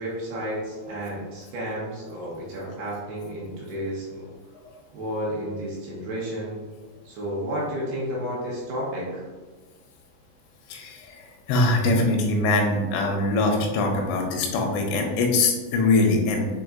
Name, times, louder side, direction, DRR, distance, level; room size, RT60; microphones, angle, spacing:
voice 1, 0.0-4.3 4.9-6.6 7.1-9.3, equal, 75° right, -5 dB, 2.6 m, -31 dB
voice 2, 10.7-16.5, left 2 dB, 80° left, 2 dB, 2.7 m, -23 dB
7.0 x 3.1 x 2.4 m, 1.3 s
omnidirectional pair, 5.2 m